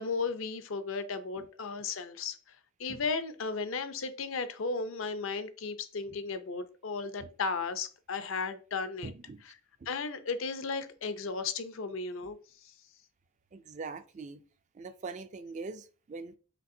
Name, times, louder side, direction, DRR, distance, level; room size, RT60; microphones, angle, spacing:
voice 1, 0.0-2.4 2.8-9.1 9.9-12.4, left 4 dB, 70° left, 0.5 m, -35 dB
voice 2, 9.0-9.4 13.5-14.4 14.7-16.4, right 4 dB, 35° right, 0.3 m, -42 dB
5.2 x 3.3 x 2.6 m
head